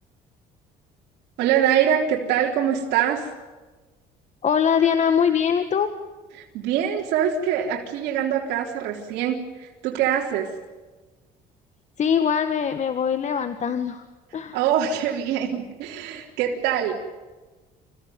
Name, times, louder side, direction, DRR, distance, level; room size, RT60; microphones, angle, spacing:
voice 1, 1.4-3.3 6.3-10.5 14.5-16.9, right 9 dB, 90° right, -1 dB, 3.8 m, -24 dB
voice 2, 4.4-5.9 12.0-14.0 14.3-14.6, left 7 dB, 45° left, 9 dB, 1.7 m, -22 dB
28.5 x 16.0 x 9.4 m, 1.3 s
cardioid pair, 110°, 17 cm